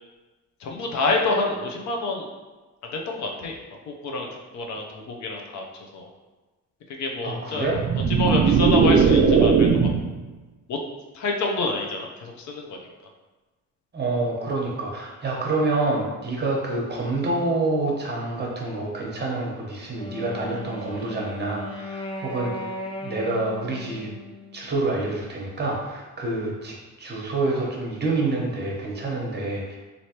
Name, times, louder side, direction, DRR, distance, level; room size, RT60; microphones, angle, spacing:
voice 1, 0.6-2.3 2.8-3.6 3.9-4.3 4.5-6.1 6.9-7.7 8.1-9.9 10.7-10.8 11.1-12.8, left 3 dB, 70° left, 1 dB, 0.6 m, -27 dB
voice 2, 7.2-7.8 13.9-22.7 23.0-24.1 24.5-29.8, right 2 dB, 35° right, -2 dB, 0.9 m, -27 dB
sound 1, 7.6-10.2, right 5 dB, 50° right, 0.4 m, -18 dB
Wind instrument woodwind instrument, 20.0-25.0, left 2 dB, 20° left, 0.4 m, -37 dB
3.2 x 2.7 x 2.9 m, 1.2 s
cardioid pair, 90°, 30 cm